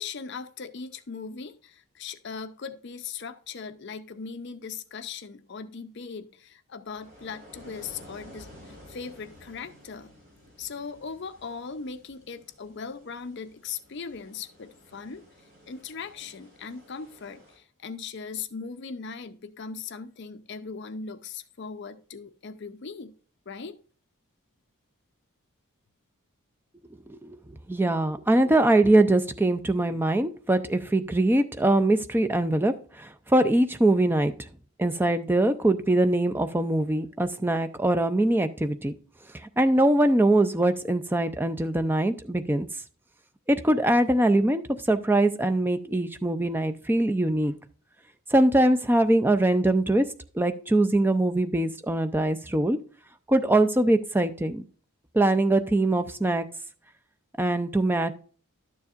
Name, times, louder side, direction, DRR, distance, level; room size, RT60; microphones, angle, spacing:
voice 1, 0.0-10.1 10.6-15.2 15.7-23.1 23.5-23.8, left 5 dB, 50° left, 10 dB, 0.5 m, -39 dB
sound 1, 6.9-17.6, left 1 dB, 40° right, 3.7 m, -52 dB
voice 2, 27.7-34.3 34.8-38.9 39.3-42.7 43.5-44.6 44.9-47.5 48.3-50.1 50.3-52.8 53.3-54.6 55.1-56.5 57.4-58.1, right 1 dB, 10° right, 9 dB, 0.4 m, -22 dB
12.0 x 7.0 x 2.4 m, 0.42 s
head